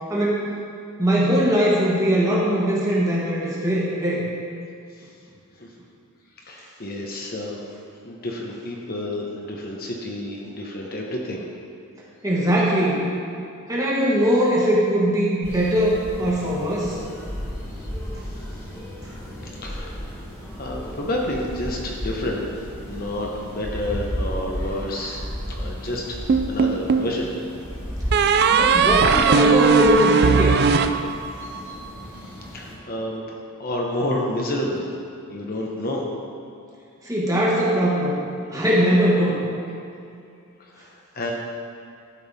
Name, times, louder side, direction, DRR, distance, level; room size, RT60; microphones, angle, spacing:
voice 1, 0.1-0.5 1.0-4.2 12.2-13.0 13.7-17.0 28.5-30.5 37.0-38.2 38.5-39.4, equal, 15° right, -6 dB, 1.6 m, -20 dB
voice 2, 6.5-7.6 8.0-11.4 18.5-18.6 19.4-20.3 20.6-22.4 22.8-25.2 25.6-26.2 26.5-27.3 32.1-34.8 35.3-36.0 40.6-41.3, left 1 dB, 40° left, -1 dB, 0.9 m, -30 dB
sound 1, 15.4-32.8, equal, 15° left, 1.9 m, -34 dB
sound 2, 26.3-27.2 28.1-31.6, right 6 dB, 45° right, 0.3 m, -18 dB
12.5 x 5.4 x 4.1 m, 2.5 s
head